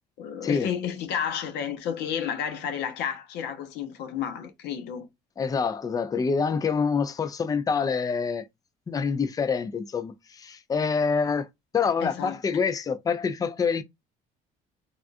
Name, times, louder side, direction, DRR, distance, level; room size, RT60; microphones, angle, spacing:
voice 1, 0.2-5.1 12.0-12.4, left 8 dB, 85° left, 0.8 m, -31 dB
voice 2, 5.4-8.4 8.9-11.5 11.7-13.8, left 5 dB, 20° left, 0.4 m, -26 dB
3.5 x 2.3 x 2.5 m
cardioid pair, 110°, 17 cm